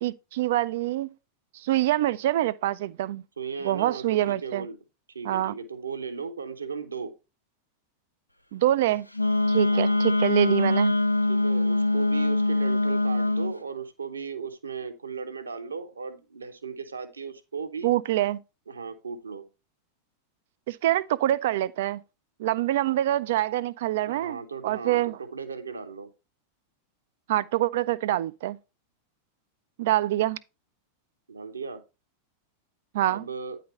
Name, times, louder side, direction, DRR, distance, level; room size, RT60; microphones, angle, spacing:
voice 1, 0.0-1.1 1.5-3.2 3.6-4.7 5.2-5.5 8.5-9.1 9.5-10.9 17.8-18.4 20.7-22.0 22.4-24.4 24.6-25.2 27.3-28.6 29.8-30.4 32.9-33.2, right 14 dB, 55° right, 0.3 m, -25 dB
voice 2, 3.4-4.8 5.1-7.1 9.7-10.0 11.3-17.9 18.7-19.4 24.1-26.1 31.3-31.8 33.0-33.6, right 5 dB, 75° right, 0.9 m, -36 dB
Wind instrument woodwind instrument, 9.1-13.5, left 2 dB, 85° left, 0.4 m, -23 dB
9.3 x 4.1 x 4.2 m
figure-of-eight pair, 90°, 0 cm